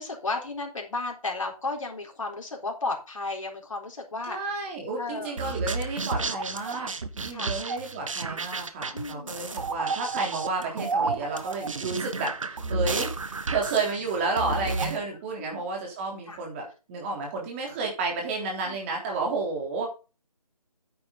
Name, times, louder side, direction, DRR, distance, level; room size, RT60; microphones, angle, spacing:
voice 1, 0.0-4.4 5.0-5.3 7.3-7.5 8.9-9.4 12.6-12.7 15.4-15.7 16.3-16.4 18.7-18.8, left 3 dB, 55° left, 2 dB, 4.0 m, -33 dB
voice 2, 4.3-19.9, right 3 dB, 20° right, 1 dB, 3.4 m, -31 dB
sound 1, 5.4-15.0, right 3 dB, 55° right, 1.4 m, -31 dB
9.5 x 8.6 x 4.0 m, 0.31 s
figure-of-eight pair, 150°, 20 cm